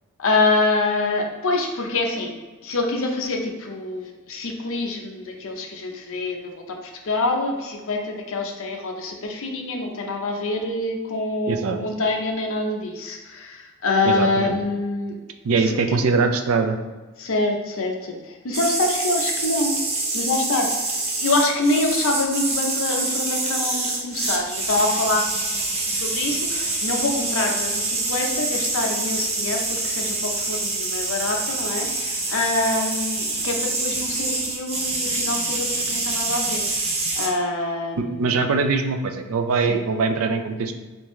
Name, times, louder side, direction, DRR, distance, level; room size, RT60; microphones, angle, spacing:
voice 1, 0.2-2.3 2.6-15.1 15.5-16.0 17.2-19.8 20.1-20.7 21.2-25.2 25.8-38.5 39.5-39.8, left 2 dB, 65° left, 2 dB, 0.7 m, -26 dB
voice 2, 11.5-11.8 14.0-14.6 15.4-16.8 38.0-40.7, right 4 dB, 65° right, 6 dB, 0.4 m, -22 dB
sound 1, 18.5-37.3, right 2 dB, 30° right, 0.7 m, -26 dB
3.4 x 3.4 x 3.1 m, 1.3 s
head